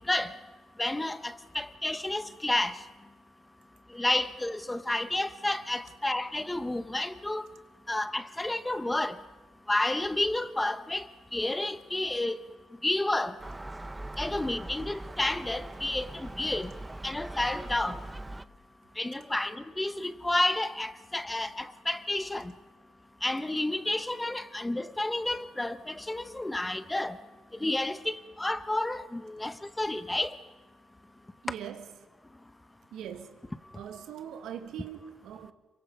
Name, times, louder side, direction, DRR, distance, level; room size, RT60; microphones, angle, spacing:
voice 1, 0.8-2.8 3.9-7.4 7.9-9.2 9.7-11.1 11.3-12.3 12.8-13.3 14.2-16.7 17.0-18.0 19.0-22.5 23.2-27.2 27.6-30.4, left 1 dB, 10° left, 1.0 m, -30 dB
Gull seagull, 13.4-18.4, right 1 dB, 15° right, 0.7 m, -41 dB
voice 2, 31.4-31.9 32.9-33.4 33.8-35.5, right 9 dB, 80° right, 1.6 m, -41 dB
27.0 x 23.5 x 5.4 m
cardioid pair, 90°, 0 cm